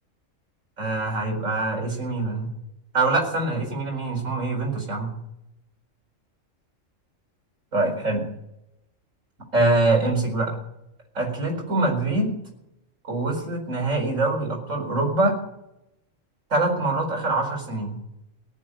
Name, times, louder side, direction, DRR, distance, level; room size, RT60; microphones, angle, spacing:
voice 1, 0.8-2.5 2.9-5.1 7.7-8.2 9.5-10.5 11.1-12.3 13.0-15.4 16.5-18.0, right 2 dB, 80° right, 0 dB, 4.9 m, -24 dB
18.0 x 7.5 x 9.9 m, 0.84 s
omnidirectional pair, 1.3 m